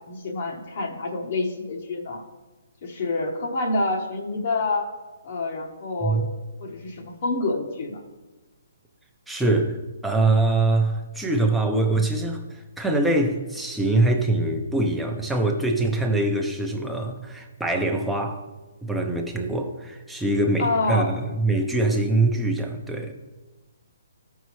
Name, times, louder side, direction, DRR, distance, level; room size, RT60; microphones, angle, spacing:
voice 1, 0.1-2.2 2.8-4.9 5.2-6.2 6.6-8.0 20.6-21.1, left 2 dB, 50° left, 1 dB, 1.0 m, -27 dB
voice 2, 9.3-18.5 18.8-23.1, right 2 dB, ahead, 1 dB, 0.7 m, -23 dB
13.0 x 5.6 x 3.1 m, 1.2 s
hypercardioid pair, 160°, 0 cm